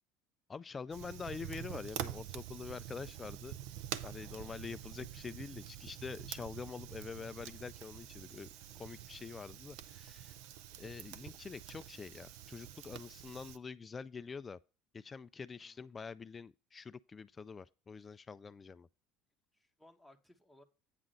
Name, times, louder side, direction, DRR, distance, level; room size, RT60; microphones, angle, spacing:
voice 1, 0.5-3.6 4.0-8.5 8.7-10.4 10.8-14.6 14.9-18.9, left 5 dB, 25° left, 0.3 m, -46 dB
Fire, 0.9-13.6, right 11 dB, 70° right, 0.7 m, -47 dB
voice 2, 15.6-16.0 18.0-18.2 19.5-20.6, left 1 dB, ahead, 1.5 m, -64 dB
9.1 x 3.7 x 6.5 m
hypercardioid pair, 85°, 0 cm